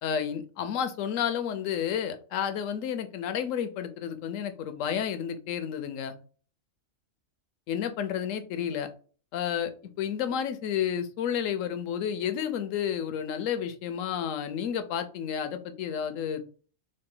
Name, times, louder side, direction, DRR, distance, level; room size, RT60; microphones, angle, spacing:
voice 1, 0.0-6.2 7.7-8.9 9.3-9.7 10.0-16.5, left 8 dB, 70° left, 9 dB, 0.9 m, -31 dB
3.7 x 2.1 x 3.7 m, 0.39 s
omnidirectional pair, 1.4 m